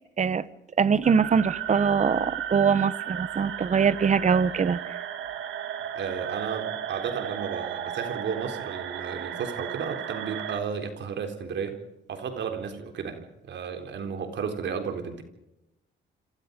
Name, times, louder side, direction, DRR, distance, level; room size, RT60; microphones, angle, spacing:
voice 1, 0.8-4.8, right 6 dB, 35° right, 17 dB, 1.1 m, -23 dB
sound 1, 1.0-10.6, right 9 dB, 80° right, 2.1 m, -34 dB
voice 2, 5.9-11.8 12.1-15.2, right 6 dB, 65° right, 6 dB, 3.9 m, -33 dB
28.0 x 26.5 x 5.3 m, 0.92 s
cardioid pair, 90°, 20 cm